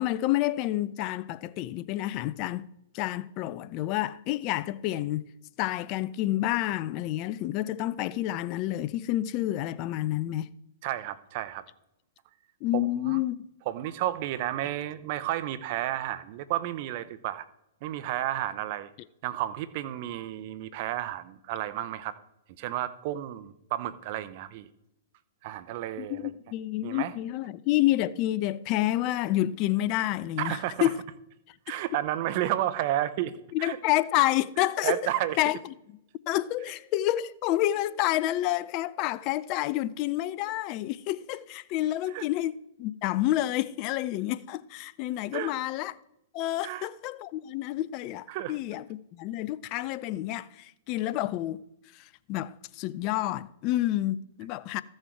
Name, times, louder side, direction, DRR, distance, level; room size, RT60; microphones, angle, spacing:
voice 1, 0.0-2.7 2.9-5.2 5.6-10.5 12.6-13.4 26.0-31.0 33.5-35.0 35.4-35.6 36.3-45.9 46.3-51.6 51.9-54.8, left 15 dB, 40° left, 0.5 m, -29 dB
voice 2, 10.8-11.6 12.7-13.2 13.7-17.4 17.8-18.9 19.2-22.2 22.6-24.7 25.4-26.3 26.8-27.1 30.4-30.9 31.7-33.3 33.6-33.8 34.8-35.4 42.1-42.2 45.3-45.5 46.6-46.9 48.3-48.6, right 13 dB, 50° right, 0.8 m, -32 dB
14.0 x 6.5 x 4.6 m
hypercardioid pair, 115°, 0 cm